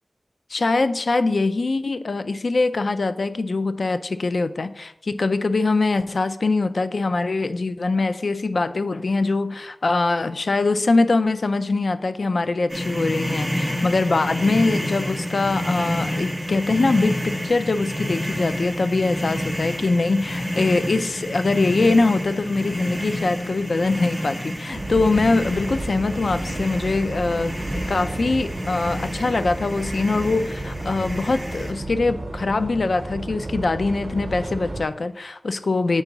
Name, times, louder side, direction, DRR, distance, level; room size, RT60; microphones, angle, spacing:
voice 1, 0.5-36.0, left 3 dB, 80° left, 11 dB, 0.3 m, -23 dB
sound 1, 12.7-31.7, equal, 15° left, 2.2 m, -29 dB
sound 2, 24.7-34.8, right 2 dB, 80° right, 0.7 m, -32 dB
7.1 x 4.5 x 3.9 m, 0.84 s
wide cardioid pair, 65°, 0 cm